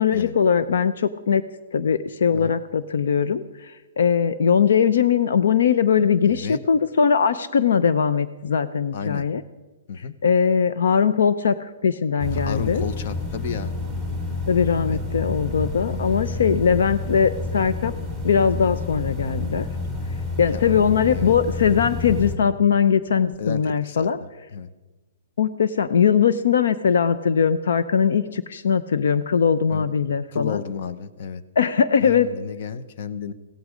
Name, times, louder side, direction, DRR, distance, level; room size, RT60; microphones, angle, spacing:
voice 1, 0.0-1.4 1.7-9.4 10.2-12.8 14.5-17.9 18.2-19.6 20.4-24.2 25.4-30.6 31.6-32.3, left 7 dB, 75° left, 13 dB, 0.7 m, -20 dB
voice 2, 8.9-9.2 9.9-10.1 12.3-13.7 14.8-15.0 15.9-16.2 20.5-20.6 21.1-21.3 23.4-24.1 24.5-24.7 29.7-29.9 30.3-31.4 32.0-33.3, left 6 dB, 50° left, 13 dB, 1.0 m, -32 dB
sound 1, 12.2-22.4, left 3 dB, 15° left, 2.4 m, -29 dB
16.5 x 14.5 x 5.1 m, 1.2 s
hypercardioid pair, 160°, 0 cm